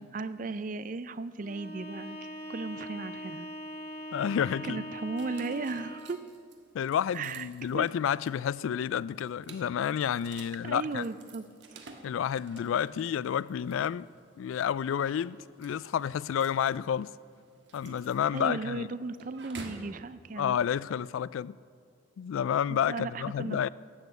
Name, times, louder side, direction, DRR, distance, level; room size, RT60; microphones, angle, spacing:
voice 1, 0.0-2.2 2.5-3.5 4.6-6.2 7.1-7.9 10.6-11.4 11.7-11.9 17.8-18.1 18.3-20.6 22.7-23.6, right 3 dB, 40° right, 0.4 m, -36 dB
Bowed string instrument, 1.4-6.2, equal, 50° left, 1.9 m, -41 dB
voice 2, 4.1-4.8 6.7-11.0 12.0-14.1 14.4-17.1 17.7-18.9 20.4-21.6 22.2-23.7, left 8 dB, 85° left, 0.3 m, -30 dB
sound 1, 5.2-19.9, right 3 dB, 60° right, 1.5 m, -53 dB
12.0 x 8.4 x 7.9 m
head